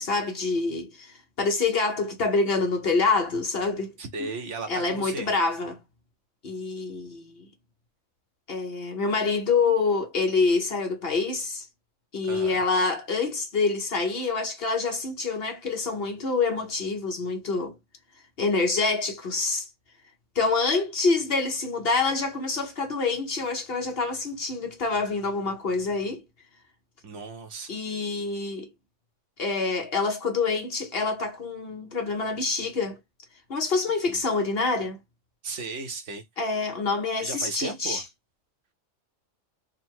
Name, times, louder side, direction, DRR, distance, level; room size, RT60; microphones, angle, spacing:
voice 1, 0.0-3.9 4.2-4.3 4.7-5.8 6.4-7.5 8.5-11.6 12.1-17.7 18.4-19.6 20.3-26.2 27.7-28.7 29.4-33.0 33.5-35.0 36.4-38.0, left 4 dB, 50° left, 1.0 m, -26 dB
voice 2, 4.0-5.3 12.3-12.6 14.2-14.3 27.0-27.8 34.1-34.2 35.4-36.2 37.2-38.1, right 3 dB, 65° right, 1.1 m, -36 dB
3.9 x 2.2 x 4.4 m
omnidirectional pair, 1.4 m